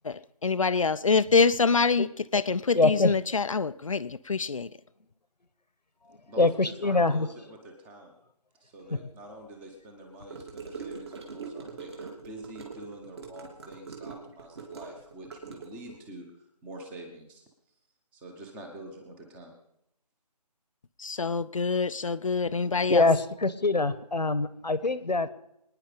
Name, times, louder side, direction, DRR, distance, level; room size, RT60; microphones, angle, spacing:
voice 1, 0.0-4.7 21.0-23.0, left 4 dB, 55° left, 0.6 m, -25 dB
voice 2, 2.7-3.1 6.1-7.3 8.9-9.0 22.9-25.3, left 3 dB, 85° left, 1.3 m, -24 dB
voice 3, 6.2-8.1 8.6-17.4 18.1-19.5, right 1 dB, 5° right, 1.1 m, -46 dB
Gurgling / Car passing by / Sink (filling or washing), 10.3-16.0, right 5 dB, 40° right, 2.9 m, -42 dB
24.5 x 10.0 x 5.1 m
figure-of-eight pair, 160°, 21 cm